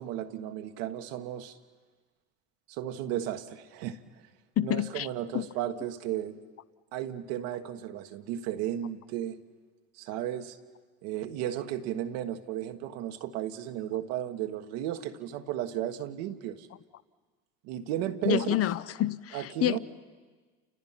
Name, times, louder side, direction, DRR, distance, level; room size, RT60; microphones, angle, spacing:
voice 1, 0.0-1.6 2.7-4.0 4.6-6.4 6.9-9.4 9.9-10.6 11.0-16.7 17.6-18.6 19.3-19.8, right 11 dB, 80° right, 1.5 m, -34 dB
voice 2, 4.6-5.1 5.3-5.5 18.2-19.8, left 12 dB, 45° left, 0.7 m, -28 dB
29.5 x 29.0 x 5.8 m
supercardioid pair, 75°, 34 cm